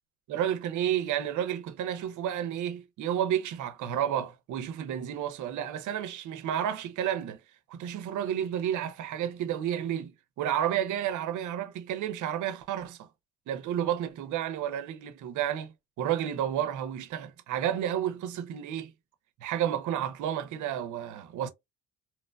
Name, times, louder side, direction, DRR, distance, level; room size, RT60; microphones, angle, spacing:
voice 1, 0.3-7.4 7.7-13.1 13.5-18.9 19.4-21.5, right 10 dB, 75° right, 0.6 m, -31 dB
2.9 x 2.1 x 2.3 m
cardioid pair, 90°, 30 cm